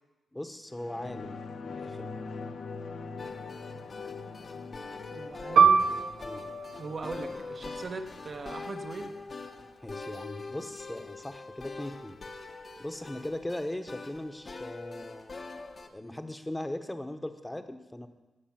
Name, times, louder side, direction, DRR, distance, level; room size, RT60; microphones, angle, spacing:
voice 1, 0.3-2.2 6.2-6.4 9.8-12.2 12.8-15.4 15.9-18.1, left 1 dB, 15° left, 8 dB, 1.1 m, -39 dB
sound 1, 0.7-9.7 10.1-10.2, left 4 dB, 75° left, 0.8 m, -43 dB
sound 2, 3.2-15.9, left 3 dB, 45° left, 1.1 m, -43 dB
voice 2, 5.1-5.9 6.8-9.1, right 3 dB, 55° right, 5 dB, 1.2 m, -40 dB
Piano, 5.6-10.6 10.9-11.1 11.9-12.2, right 6 dB, 85° right, 0.7 m, -27 dB
18.0 x 6.0 x 6.0 m, 1.1 s
cardioid pair, 70°, 0 cm